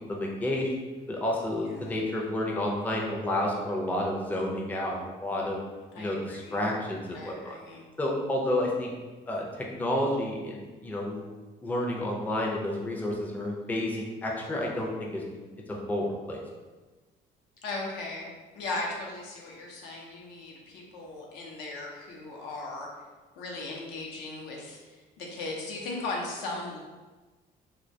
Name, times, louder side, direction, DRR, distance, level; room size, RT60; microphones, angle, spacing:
voice 1, 0.1-0.7 1.1-5.6 6.0-7.5 8.0-8.9 9.3-11.2 11.6-16.4, left 1 dB, 10° left, -2 dB, 0.4 m, -30 dB
voice 2, 1.5-1.9 5.9-6.6 7.1-7.8 17.6-18.3 18.5-22.9 23.4-26.8, left 2 dB, 85° left, -1 dB, 0.6 m, -37 dB
2.2 x 2.1 x 2.6 m, 1.3 s
cardioid pair, 110°, 17 cm